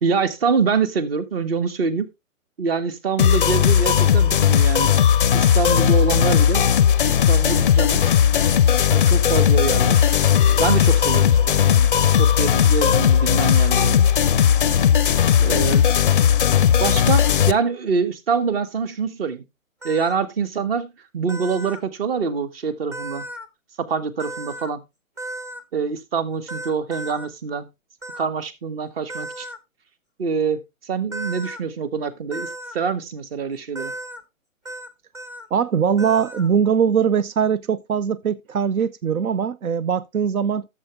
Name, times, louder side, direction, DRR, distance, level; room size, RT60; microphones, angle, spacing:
voice 1, 0.0-2.1 2.6-4.9 5.3-6.7 7.1-8.1 8.9-10.1 10.6-14.1 15.4-15.9 16.8-19.4 19.8-23.3 23.8-24.8 25.7-27.7 28.1-29.5 30.2-33.9, right 5 dB, 45° right, 1.4 m, -25 dB
sound 1, 3.2-17.5, left 9 dB, 40° left, 0.4 m, -17 dB
sound 2, 19.8-20.2 21.3-21.8 22.9-23.5 24.2-24.7 25.2-25.6 26.5-27.3 28.0-28.2 29.1-29.6 31.1-31.6 32.3-32.7 33.7-34.2 34.6-34.9 35.1-35.5 36.0-36.5, right 1 dB, 15° right, 0.5 m, -34 dB
voice 2, 35.5-40.7, right 7 dB, 85° right, 0.6 m, -21 dB
11.5 x 7.2 x 3.4 m
hypercardioid pair, 140°, 41 cm